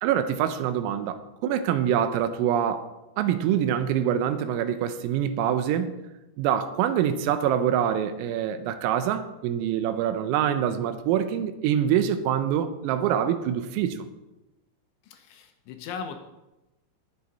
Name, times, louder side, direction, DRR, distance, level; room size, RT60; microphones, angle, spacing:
voice 1, 0.0-2.9 3.2-6.0 6.4-14.0, right 9 dB, 90° right, 3.5 m, -25 dB
voice 2, 15.0-16.2, left 6 dB, 80° left, 3.2 m, -38 dB
19.5 x 7.8 x 4.2 m
omnidirectional pair, 5.9 m